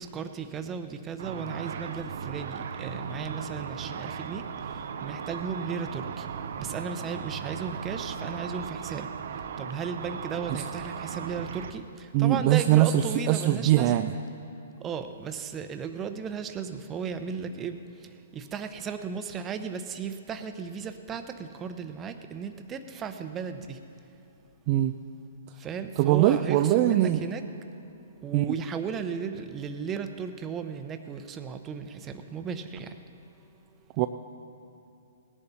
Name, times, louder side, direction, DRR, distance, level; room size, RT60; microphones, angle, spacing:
voice 1, 0.0-6.3 6.6-14.1 14.8-23.8 25.6-27.4 28.2-33.0, right 6 dB, 20° right, 8 dB, 0.8 m, -35 dB
Car / Traffic noise roadway noise / Engine, 1.2-11.7, right 6 dB, 65° right, 0.7 m, -37 dB
voice 2, 12.1-14.1 24.7-24.9 26.0-27.2 28.3-28.4 34.0-34.1, right 13 dB, 40° right, 7 dB, 0.4 m, -22 dB
18.0 x 10.5 x 4.2 m, 2.7 s
hypercardioid pair, 140°, 0 cm